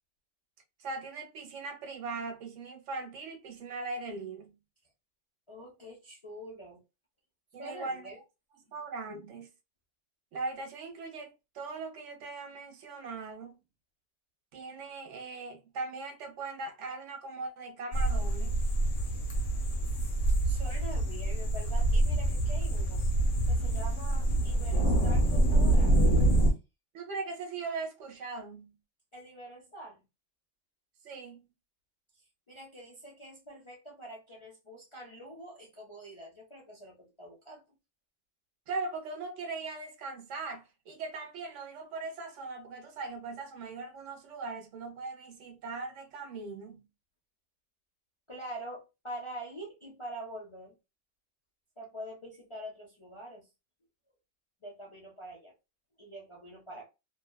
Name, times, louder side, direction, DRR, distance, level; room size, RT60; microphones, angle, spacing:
voice 1, 0.8-4.5 7.5-8.1 8.7-9.5 10.3-13.6 14.5-18.6 26.9-28.7 31.0-31.5 38.7-46.8, right 3 dB, 70° right, 1.0 m, -39 dB
voice 2, 5.5-6.8 7.6-8.2 8.7-8.8 20.4-23.0 23.5-26.1 26.4-26.5 29.1-30.0 32.1-37.8 48.3-50.7 51.8-53.5 54.6-55.5 56.0-56.8, right 1 dB, 35° left, 0.5 m, -45 dB
sound 1, 17.9-26.5, right 1 dB, 70° left, 1.1 m, -26 dB
2.8 x 2.2 x 2.2 m
omnidirectional pair, 1.4 m